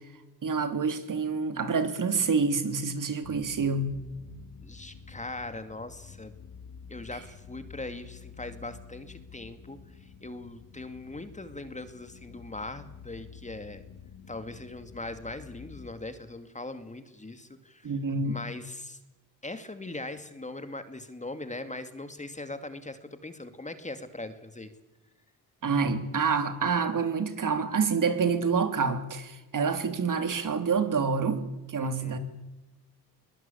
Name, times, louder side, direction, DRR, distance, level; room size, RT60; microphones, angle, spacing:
voice 1, 0.4-3.9 17.8-18.4 25.6-31.4 31.7-32.2, right 5 dB, 50° right, 3.2 m, -27 dB
sound 1, 3.2-15.9, left 6 dB, 65° left, 3.6 m, -49 dB
voice 2, 4.6-6.3 6.9-13.8 14.3-17.9 18.2-19.0 19.4-24.7 31.8-32.2, left 2 dB, 20° left, 2.5 m, -40 dB
23.0 x 21.0 x 8.6 m
cardioid pair, 85°, 39 cm